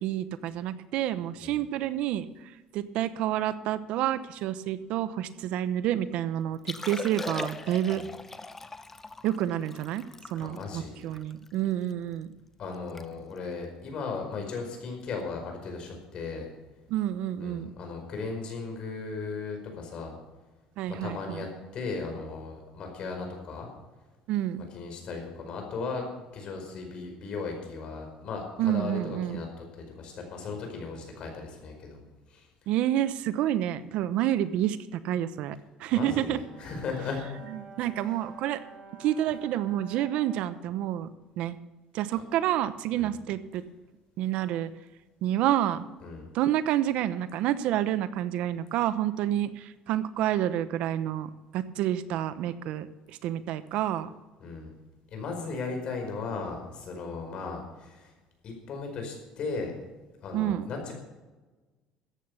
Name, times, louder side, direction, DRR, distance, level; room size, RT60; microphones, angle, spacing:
voice 1, 0.0-8.0 9.2-12.3 16.9-17.7 20.8-21.4 24.3-24.6 28.6-29.4 32.7-36.4 37.8-38.6 39.0-41.1 41.4-41.6 41.9-43.6 44.2-44.7 45.2-45.8 46.3-54.1 60.3-60.7, right 12 dB, 70° right, 14 dB, 0.8 m, -29 dB
Liquid, 6.5-11.9 12.4-12.5 12.7-13.1 13.3-13.6 14.2-14.4 15.9-16.0, left 3 dB, 15° left, 0.8 m, -40 dB
voice 2, 10.4-11.0 12.6-16.5 17.4-20.1 20.9-21.5 21.7-23.7 24.7-26.0 26.3-32.5 35.9-37.2 38.0-38.1 42.9-43.1 46.0-46.3 54.4-54.7 55.1-58.1 58.4-59.7 60.2-60.9, left 4 dB, 50° left, 3 dB, 4.9 m, -36 dB
Brass instrument, 36.2-40.6, right 3 dB, 50° right, 5.8 m, -49 dB
14.0 x 9.0 x 6.5 m, 1.2 s
cardioid pair, 125°, 2 cm